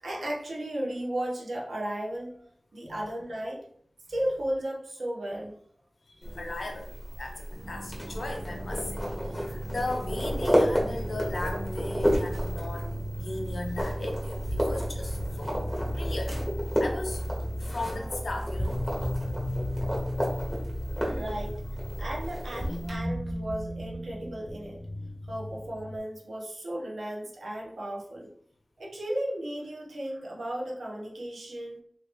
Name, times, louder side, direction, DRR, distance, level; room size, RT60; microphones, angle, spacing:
voice 1, 0.0-2.4 2.7-3.6 4.1-5.6 21.0-21.6 22.0-24.8 25.3-28.3 28.8-31.8, right 1 dB, 90° right, -3 dB, 0.8 m, -35 dB
voice 2, 6.0-6.9 7.2-15.6 15.9-16.4 16.8-18.8, left 2 dB, 70° left, 2 dB, 0.7 m, -37 dB
sound 1, 6.2-23.0, equal, ahead, 1.2 m, -32 dB
sound 2, 7.6-22.3, right 1 dB, 50° right, 1.0 m, -37 dB
sound 3, 14.4-26.0, left 1 dB, 20° left, 0.6 m, -37 dB
3.1 x 2.8 x 3.0 m, 0.63 s
wide cardioid pair, 65°, 0 cm